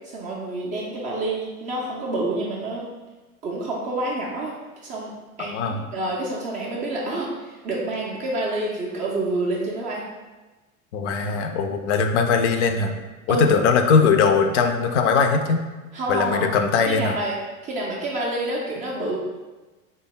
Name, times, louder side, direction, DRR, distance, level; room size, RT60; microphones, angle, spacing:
voice 1, 0.0-2.9 3.4-4.5 4.8-10.1 13.3-13.5 15.9-16.5 16.9-17.4 17.6-19.2, right 2 dB, 20° right, -3 dB, 0.3 m, -28 dB
voice 2, 5.4-5.8 10.9-13.0 13.3-15.6 16.1-17.2, left 5 dB, 55° left, 6 dB, 0.5 m, -20 dB
3.4 x 2.2 x 3.8 m, 1.2 s
figure-of-eight pair, 80°, 43 cm